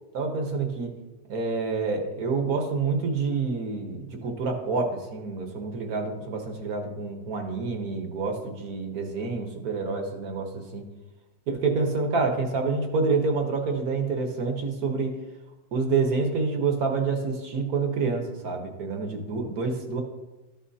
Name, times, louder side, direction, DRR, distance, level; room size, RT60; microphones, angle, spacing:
voice 1, 0.1-0.9 1.3-10.8 11.5-15.2 15.7-20.0, right 4 dB, 60° right, 4 dB, 1.5 m, -27 dB
13.0 x 6.3 x 2.7 m, 1.1 s
omnidirectional pair, 1.9 m